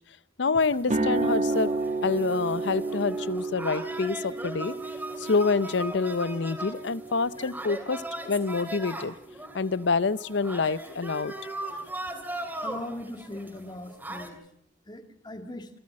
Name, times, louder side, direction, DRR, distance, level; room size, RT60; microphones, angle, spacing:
voice 1, 0.4-1.7 2.0-4.7 5.2-9.1 9.5-11.3, left 4 dB, 70° left, 18 dB, 0.7 m, -27 dB
sound 1, 0.6-14.3, right 1 dB, 10° right, 3.0 m, -39 dB
sound 2, 0.8-8.9, right 2 dB, 40° right, 1.7 m, -32 dB
voice 2, 12.6-14.4 14.9-15.7, left 1 dB, 25° left, 7 dB, 2.0 m, -39 dB
27.0 x 13.0 x 7.6 m, 0.75 s
head